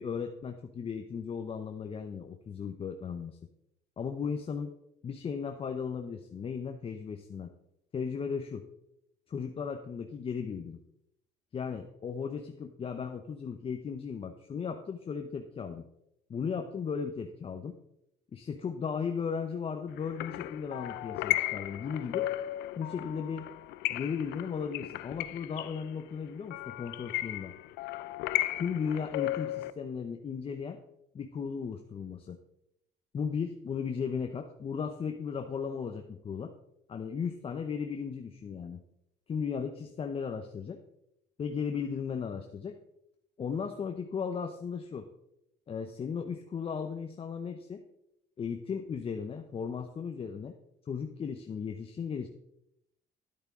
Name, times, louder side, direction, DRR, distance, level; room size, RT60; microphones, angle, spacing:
voice 1, 0.0-3.4 4.0-4.7 5.0-7.5 7.9-8.6 9.3-10.8 11.5-15.9 16.3-17.8 18.3-22.3 22.8-23.5 23.9-27.5 28.6-30.8 31.1-32.4 33.1-36.5 36.9-38.8 39.3-40.8 41.4-42.8 43.4-45.1 45.7-47.8 48.4-50.6 50.9-52.3, left 6 dB, 35° left, 5 dB, 0.7 m, -36 dB
sound 1, 20.0-29.7, left 16 dB, 85° left, 0.5 m, -35 dB
10.5 x 8.6 x 3.6 m, 0.80 s
cardioid pair, 110°, 17 cm